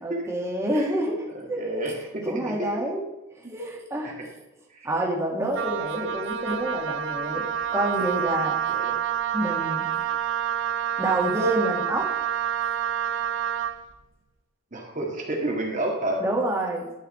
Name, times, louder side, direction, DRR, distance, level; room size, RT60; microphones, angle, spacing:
voice 1, 0.0-1.9 2.2-3.0 3.5-4.2 4.8-7.5 7.7-8.6 9.3-9.9 11.0-12.1 16.2-16.9, right 1 dB, 15° right, -2 dB, 1.9 m, -27 dB
voice 2, 1.3-2.7 3.4-3.5 4.0-4.3 4.7-4.9 8.7-9.0 14.7-16.2, right 1 dB, 40° right, -1 dB, 2.1 m, -30 dB
Wind instrument woodwind instrument, 5.5-13.8, right 9 dB, 70° right, 0.6 m, -28 dB
11.5 x 5.7 x 4.3 m, 1.0 s
head